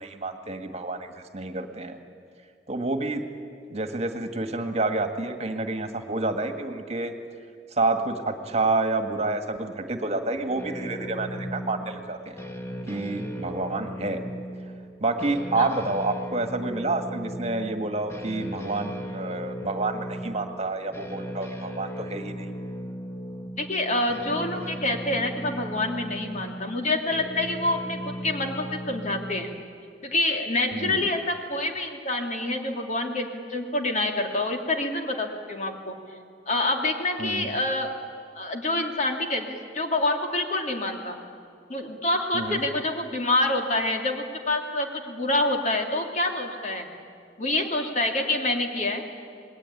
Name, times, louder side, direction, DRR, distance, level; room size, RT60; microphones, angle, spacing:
voice 1, 0.0-2.0 2.7-3.2 3.7-7.1 7.7-12.4 12.9-14.2 15.0-22.5 30.7-31.1 37.2-37.5 42.3-42.6, right 2 dB, 40° right, 7 dB, 1.8 m, -29 dB
sound 1, 10.6-29.4, equal, 15° left, 2.1 m, -37 dB
voice 2, 23.6-29.5 30.0-35.9 36.5-37.9 38.3-41.2 41.7-46.9 47.4-49.0, left 2 dB, 45° left, 3 dB, 2.7 m, -27 dB
27.0 x 20.0 x 9.8 m, 2.4 s
head